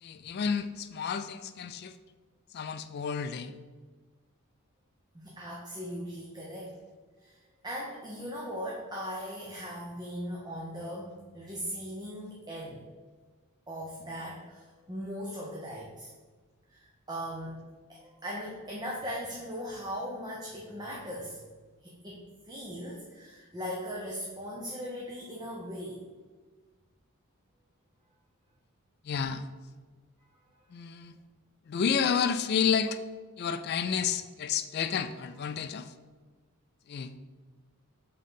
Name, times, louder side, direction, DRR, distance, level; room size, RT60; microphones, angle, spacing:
voice 1, 0.0-2.0 2.5-3.5 29.0-29.5 30.7-31.1 31.7-33.0 33.4-35.9 36.9-37.1, left 7 dB, 45° left, 10 dB, 0.3 m, -30 dB
voice 2, 5.1-6.8 7.2-12.8 13.7-16.1 16.7-17.6 17.9-21.5 21.8-26.0 30.5-30.6, equal, 20° right, -4 dB, 0.7 m, -39 dB
5.6 x 3.7 x 5.5 m, 1.4 s
head